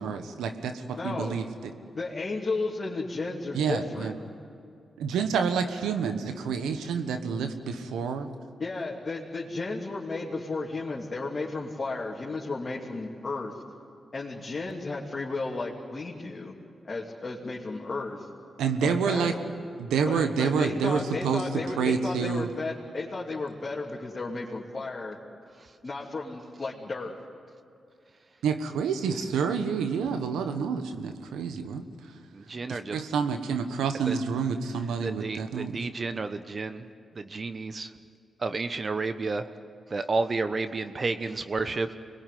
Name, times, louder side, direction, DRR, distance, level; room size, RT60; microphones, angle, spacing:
voice 1, 0.0-1.7 3.5-4.1 5.0-8.3 18.6-19.3 19.8-21.4 21.8-22.5 28.4-31.8 32.7-35.8, right 6 dB, 90° right, 8 dB, 1.3 m, -28 dB
voice 2, 1.0-1.4 1.9-4.1 8.6-13.6 14.1-16.5 16.8-18.3 18.8-19.4 20.0-25.2 25.8-27.2, left 3 dB, 45° left, -4 dB, 3.1 m, -33 dB
voice 3, 32.3-33.0 34.0-34.2 35.0-36.8 37.1-37.9 38.4-39.5 39.9-42.0, right 3 dB, 45° right, 10 dB, 1.1 m, -31 dB
25.0 x 21.5 x 9.4 m, 2.5 s
supercardioid pair, 45°, 0 cm